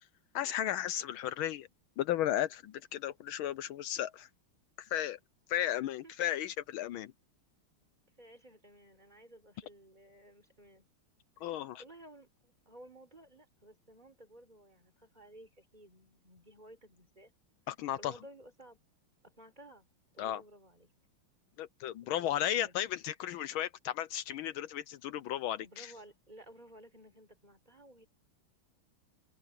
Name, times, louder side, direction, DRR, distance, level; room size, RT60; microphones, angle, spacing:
voice 1, 0.3-1.7 2.0-4.3 4.8-5.2 5.5-7.1 11.4-11.8 17.7-18.1 20.2-20.4 21.6-25.9, left 12 dB, 75° left, 1.4 m, -34 dB
voice 2, 8.2-10.9 11.4-17.3 18.0-18.8 19.2-19.9 20.1-20.9 22.0-22.7 25.6-28.1, right 1 dB, 20° right, 4.4 m, -56 dB
open air
omnidirectional pair, 2.4 m